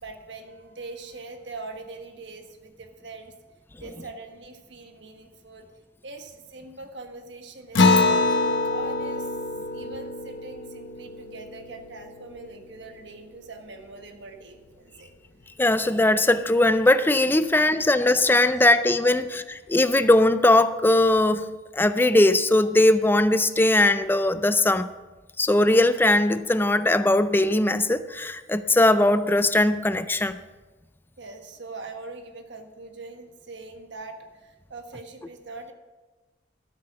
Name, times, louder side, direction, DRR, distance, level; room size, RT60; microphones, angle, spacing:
voice 1, 0.0-3.3 3.8-5.7 6.0-9.4 9.7-15.1 17.6-17.8 18.4-19.2 31.2-35.7, right 3 dB, 70° right, 5 dB, 1.4 m, -42 dB
Acoustic guitar, 7.7-12.6, left 3 dB, 80° left, 0.9 m, -25 dB
voice 2, 15.6-19.2 19.7-21.5 21.7-24.9 25.4-30.4, left 2 dB, 10° left, 12 dB, 0.4 m, -20 dB
13.0 x 7.9 x 5.9 m, 1.2 s
head